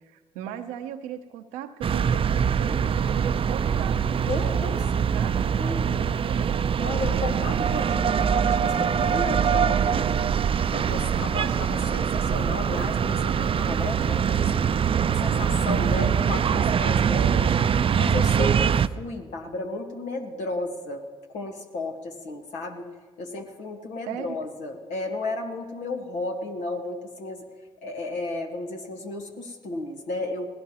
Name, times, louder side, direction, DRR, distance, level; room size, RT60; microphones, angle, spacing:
voice 1, 0.1-4.0 4.4-6.6 15.7-16.3 17.1-17.7 24.1-24.4, right 10 dB, 90° right, 7 dB, 0.7 m, -38 dB
sound 1, 1.8-18.9, right 7 dB, 45° right, 0.5 m, -23 dB
voice 2, 4.2-5.0 5.6-5.8 6.8-10.1 10.7-14.7 15.1-17.5 18.0-22.9 23.2-27.4 27.8-30.5, left 2 dB, 80° left, 2 dB, 1.7 m, -33 dB
19.0 x 17.0 x 3.0 m, 1.4 s
hypercardioid pair, 45°, 12 cm